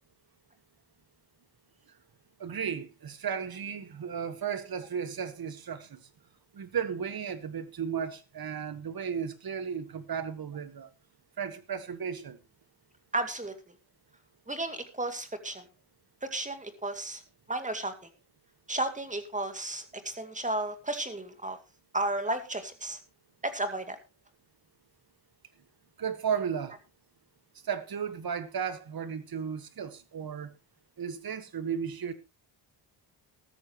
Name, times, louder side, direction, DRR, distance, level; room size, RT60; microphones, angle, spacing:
voice 1, 2.4-6.1 6.5-10.9 11.4-12.4 26.0-26.8 27.6-30.5 31.0-32.1, right 7 dB, 45° right, 1.7 m, -34 dB
voice 2, 13.1-13.5 14.5-15.6 16.2-17.2 17.5-17.9 18.7-21.6 21.9-23.0 23.4-24.0, right 2 dB, 15° right, 2.4 m, -33 dB
14.0 x 13.0 x 3.1 m
cardioid pair, 100°, 48 cm